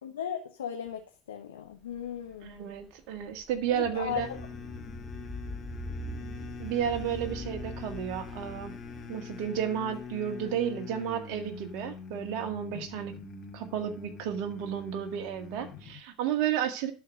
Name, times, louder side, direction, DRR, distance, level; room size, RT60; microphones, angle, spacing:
voice 1, 0.0-2.6 3.7-4.4, left 9 dB, 85° left, 4 dB, 1.1 m, -37 dB
sound 1, 2.0-11.0, equal, 10° right, 3.4 m, -43 dB
voice 2, 2.4-4.3 6.6-8.7 9.1-13.2 13.5-16.9, right 9 dB, 65° right, 7 dB, 1.8 m, -32 dB
sound 2, 4.1-16.0, left 5 dB, 40° left, 2.1 m, -44 dB
11.5 x 4.7 x 6.5 m, 0.35 s
hypercardioid pair, 80°, 0 cm